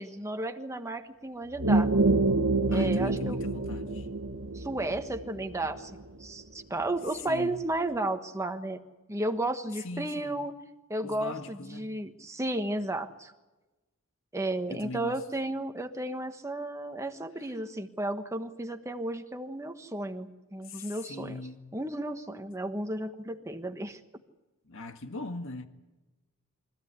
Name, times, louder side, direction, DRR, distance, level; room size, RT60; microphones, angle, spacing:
voice 1, 0.0-1.9 2.7-3.4 4.5-8.8 9.1-10.5 10.9-13.3 14.3-21.4 21.7-24.0, right 1 dB, 15° right, 1.4 m, -33 dB
sound 1, 1.5-6.3, right 2 dB, 70° right, 1.3 m, -27 dB
voice 2, 2.7-4.1 7.3-7.6 9.8-10.3 11.0-11.9 14.7-15.2 20.6-21.7 24.7-25.7, left 2 dB, 65° left, 1.7 m, -40 dB
24.5 x 15.5 x 9.6 m
head